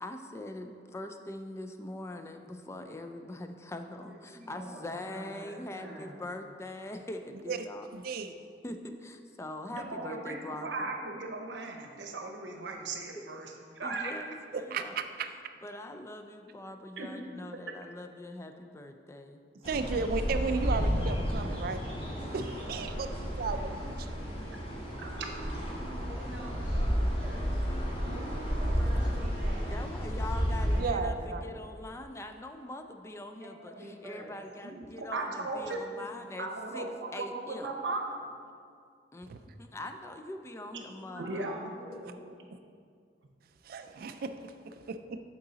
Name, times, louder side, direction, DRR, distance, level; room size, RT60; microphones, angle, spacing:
voice 1, 0.0-7.9 8.6-10.9 13.1-13.2 13.8-15.0 15.6-19.4 29.7-36.5 36.7-37.7 39.1-41.5, left 1 dB, 15° left, 6 dB, 0.3 m, -42 dB
voice 2, 4.1-6.2 25.8-27.6 28.5-29.8 30.5-31.5 33.1-34.3 40.6-42.2, equal, 5° right, -9 dB, 1.7 m, -47 dB
voice 3, 7.9-8.3 14.5-15.3 19.6-21.8 22.3-24.1 28.0-28.8 30.8-31.4 39.3-39.4 42.5-42.6 43.6-45.2, right 4 dB, 55° right, 8 dB, 0.4 m, -35 dB
voice 4, 9.7-14.2 17.0-17.1 17.7-17.8 25.0-25.4 34.6-36.1 36.4-38.3 41.2-41.5, right 3 dB, 80° right, 2 dB, 0.8 m, -37 dB
sound 1, 19.6-30.8, equal, 30° left, 1.2 m, -32 dB
8.1 x 3.9 x 3.9 m, 2.3 s
head